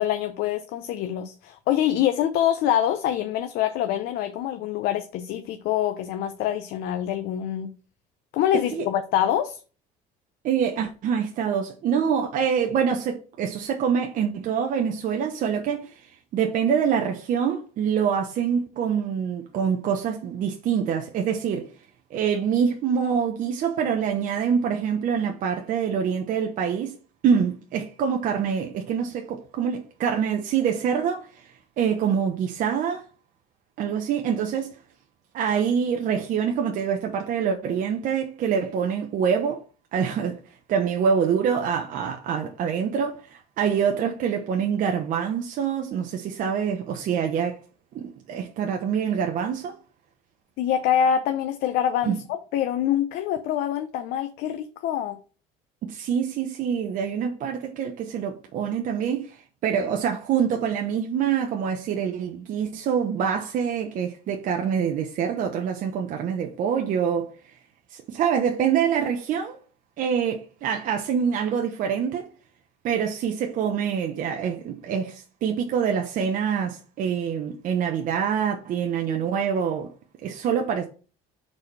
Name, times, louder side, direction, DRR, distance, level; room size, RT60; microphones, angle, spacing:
voice 1, 0.0-7.7 8.3-9.6 50.6-52.2 52.5-55.2, left 10 dB, 65° left, 0.7 m, -25 dB
voice 2, 8.5-8.8 10.4-21.7 22.1-27.0 27.2-33.1 33.8-34.8 35.3-39.6 39.9-40.4 40.7-47.6 47.9-49.8 52.1-52.2 55.8-67.5 67.9-69.6 70.0-72.3 72.8-79.9 80.2-80.9, right 7 dB, 55° right, 0.9 m, -25 dB
4.9 x 4.2 x 6.0 m
cardioid pair, 115°, 17 cm